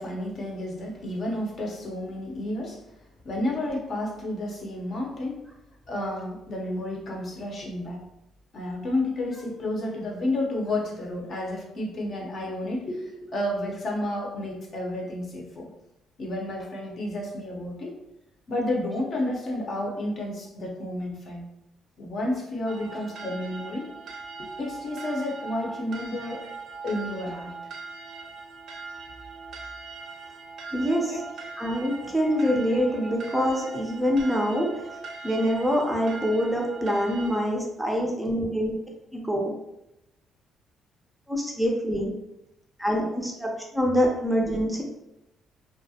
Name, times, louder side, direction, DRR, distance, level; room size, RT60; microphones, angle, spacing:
voice 1, 0.0-2.8 3.2-5.4 5.9-8.0 8.5-15.7 16.2-18.0 18.5-21.5 22.0-23.9 24.4-26.4 26.8-27.5 31.0-31.4 31.9-32.2 32.7-33.1 33.7-33.8, left 1 dB, 50° left, -1 dB, 0.6 m, -31 dB
sound 1, 22.7-37.5, right 4 dB, 70° right, 0.4 m, -41 dB
voice 2, 30.7-31.1 31.6-34.7 35.2-38.7 39.1-39.5 41.3-42.1 42.8-44.8, equal, 5° right, 0 dB, 0.4 m, -25 dB
2.3 x 2.1 x 2.7 m, 0.88 s
cardioid pair, 110°, 0 cm